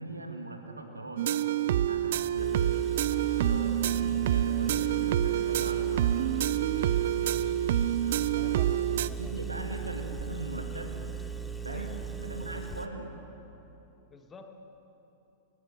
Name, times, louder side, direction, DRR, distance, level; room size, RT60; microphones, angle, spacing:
voice 1, 0.0-1.4 1.8-2.6 3.1-6.4 6.7-7.3 8.8-11.1 11.6-13.2, right 2 dB, 90° right, 4 dB, 2.2 m, -40 dB
sound 1, 1.2-9.1, right 11 dB, 60° right, 0.5 m, -27 dB
Engine, 2.4-12.9, right 6 dB, 5° left, 1.2 m, -37 dB
voice 2, 8.4-9.4 11.7-12.0 14.1-14.6, left 4 dB, 20° left, 5 dB, 2.0 m, -50 dB
28.5 x 14.5 x 6.8 m, 3.0 s
figure-of-eight pair, 95°, 0 cm